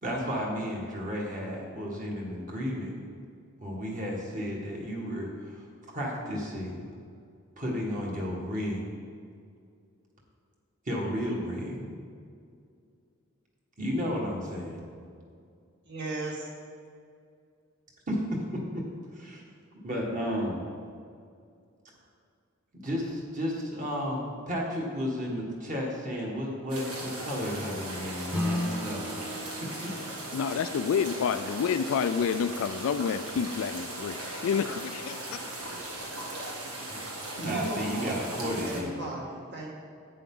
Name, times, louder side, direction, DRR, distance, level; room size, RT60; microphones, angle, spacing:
voice 1, 0.0-2.9 3.6-6.9 7.6-9.0 10.8-11.9 13.8-14.8 18.1-18.8 19.1-19.4 19.8-20.7 22.8-29.9 36.9-37.0 37.4-38.9, equal, 35° right, -2 dB, 1.8 m, -33 dB
voice 2, 15.9-16.5 37.4-39.7, right 2 dB, 50° right, -3 dB, 1.8 m, -36 dB
sound 1, 26.7-38.8, right 1 dB, 90° right, 2.0 m, -38 dB
Acoustic guitar / Strum, 28.3-33.1, left 1 dB, 5° right, 1.0 m, -36 dB
voice 3, 30.3-35.5, left 7 dB, 70° left, 10 dB, 0.3 m, -29 dB
10.5 x 8.6 x 3.9 m, 2.3 s
head